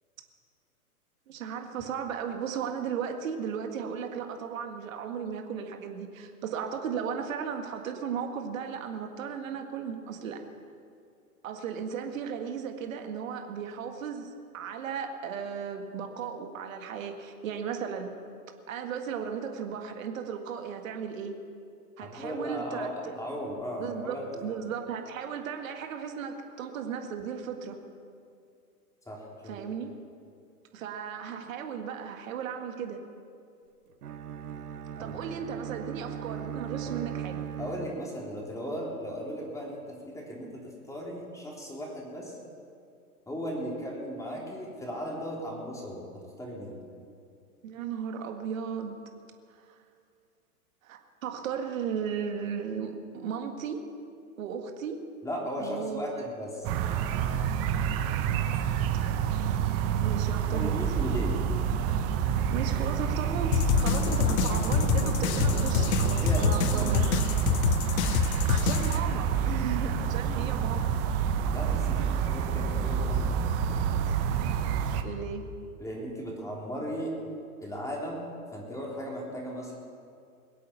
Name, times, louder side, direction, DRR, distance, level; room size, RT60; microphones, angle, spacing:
voice 1, 1.3-10.4 11.4-18.1 18.7-21.4 22.0-23.2 23.8-27.8 29.5-29.9 30.7-33.0 35.0-37.4 47.6-49.0 49.6-49.8 50.8-53.9 54.4-55.0 55.6-56.2 60.0-61.0 62.5-67.0 68.5-70.9 72.0-72.3 75.0-75.5, right 7 dB, 60° right, 5 dB, 1.8 m, -35 dB
voice 2, 22.0-24.5 29.1-29.6 35.0-35.2 36.8-37.0 37.6-42.4 43.3-46.1 46.4-46.8 55.2-56.7 60.5-61.4 66.2-67.0 71.5-73.3 75.8-77.1 77.6-79.7, equal, 5° left, -2 dB, 3.5 m, -36 dB
Bowed string instrument, 34.0-38.4, right 9 dB, 80° right, 0.7 m, -38 dB
sound 1, 56.6-75.0, right 8 dB, 30° right, 1.0 m, -28 dB
sound 2, 63.5-69.0, left 9 dB, 50° left, 0.9 m, -27 dB
22.0 x 8.5 x 7.0 m, 2.4 s
hypercardioid pair, 110°, 45 cm